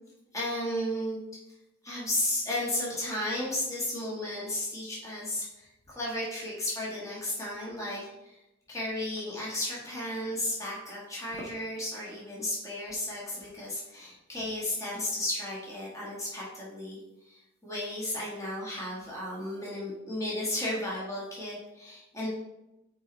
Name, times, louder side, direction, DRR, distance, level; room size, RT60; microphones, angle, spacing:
voice 1, 0.3-1.2 1.8-8.4 8.7-17.0 17.2-22.3, left 1 dB, 15° left, -6 dB, 1.8 m, -34 dB
8.5 x 4.2 x 3.4 m, 0.94 s
head